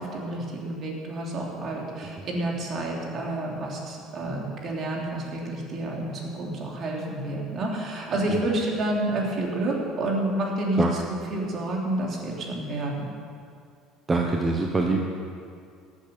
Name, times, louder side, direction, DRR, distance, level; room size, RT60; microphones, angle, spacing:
voice 1, 0.0-13.1, right 1 dB, 45° right, -1 dB, 3.1 m, -29 dB
voice 2, 14.1-15.1, right 3 dB, 20° right, 1 dB, 1.1 m, -24 dB
14.5 x 8.4 x 6.9 m, 2.3 s
supercardioid pair, 110°, 0 cm